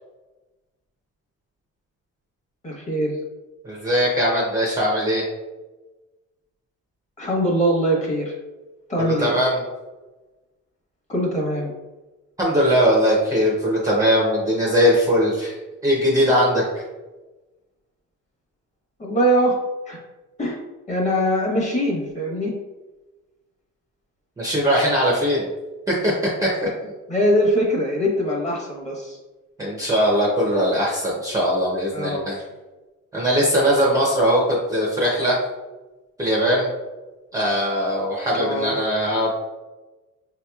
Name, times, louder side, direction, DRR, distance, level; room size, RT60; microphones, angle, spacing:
voice 1, 2.6-3.2 7.2-8.3 8.9-9.4 11.1-11.7 19.0-19.6 19.9-20.0 20.4-20.6 20.9-22.5 27.1-29.2 31.9-32.2 38.3-38.8, equal, 20° left, -2 dB, 1.0 m, -22 dB
voice 2, 3.6-5.2 9.0-9.6 12.4-15.5 15.8-16.8 24.4-25.5 25.9-26.1 26.4-26.5 26.8-26.9 29.6-32.4 33.1-35.4 36.2-36.7 37.3-39.3, equal, 10° right, -4 dB, 0.5 m, -20 dB
5.7 x 2.9 x 2.3 m, 1.2 s
cardioid pair, 165°, 31 cm